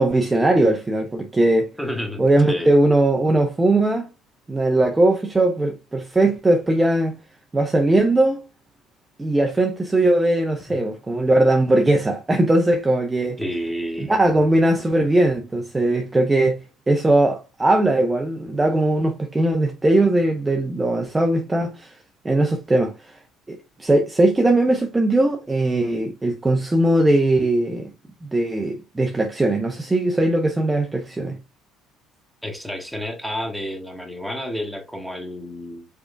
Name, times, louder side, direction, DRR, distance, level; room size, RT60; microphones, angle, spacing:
voice 1, 0.0-1.7 2.2-4.1 4.5-7.2 7.5-8.4 9.2-13.4 14.0-16.6 16.9-22.0 22.2-23.2 23.5-27.9 28.2-31.4, right 1 dB, 15° right, 0.7 m, -19 dB
voice 2, 1.8-2.8 10.7-10.8 13.4-14.2 32.4-35.9, equal, ahead, 1.5 m, -30 dB
4.9 x 3.7 x 2.5 m
figure-of-eight pair, 55°, 0 cm